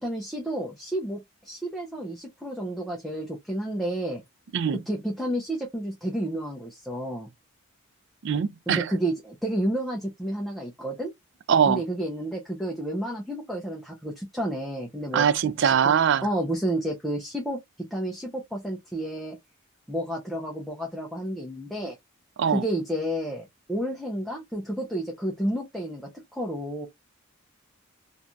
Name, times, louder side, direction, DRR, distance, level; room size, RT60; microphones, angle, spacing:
voice 1, 0.0-4.2 4.7-7.3 8.7-11.1 11.7-15.3 15.6-16.0 16.2-19.4 19.9-22.0 22.5-26.9, right 1 dB, ahead, 0.6 m, -31 dB
voice 2, 8.2-8.9 11.5-11.8 15.1-16.3 22.4-22.6, right 7 dB, 55° right, 0.3 m, -22 dB
3.1 x 2.7 x 2.3 m
head